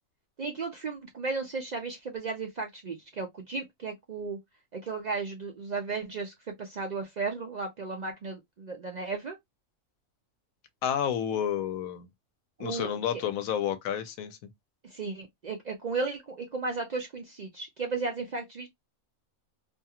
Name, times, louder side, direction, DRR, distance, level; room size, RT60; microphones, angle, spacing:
voice 1, 0.4-4.4 4.7-9.4 12.6-13.2 14.9-18.7, right 4 dB, 75° right, 0.4 m, -35 dB
voice 2, 10.8-12.1 12.6-14.4, left 9 dB, 85° left, 1.0 m, -30 dB
2.6 x 2.3 x 2.7 m
omnidirectional pair, 1.4 m